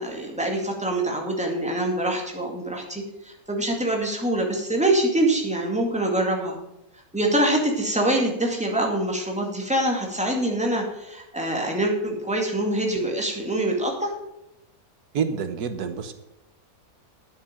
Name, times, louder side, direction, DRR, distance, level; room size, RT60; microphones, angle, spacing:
voice 1, 0.0-6.6 7.1-14.1, right 1 dB, 5° right, 0 dB, 2.1 m, -25 dB
voice 2, 15.1-16.1, right 6 dB, 90° right, 9 dB, 1.5 m, -27 dB
10.5 x 7.4 x 7.4 m, 0.87 s
omnidirectional pair, 1.6 m